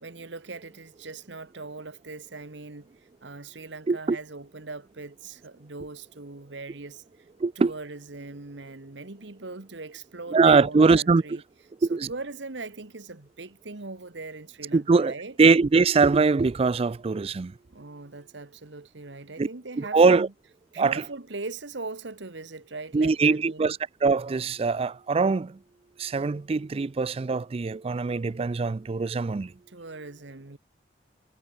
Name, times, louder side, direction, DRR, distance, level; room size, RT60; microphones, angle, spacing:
voice 1, 0.0-2.9 3.2-7.0 7.5-11.4 11.9-15.3 17.7-20.3 20.7-23.7 29.7-30.6, right 3 dB, 70° right, 1.5 m, -40 dB
voice 2, 7.4-7.7 10.3-11.2 11.8-12.1 14.7-15.1 15.4-17.5 19.4-19.5 19.8-20.3 20.8-21.0 22.9-25.6 26.0-29.5, right 4 dB, 30° right, 0.4 m, -22 dB
head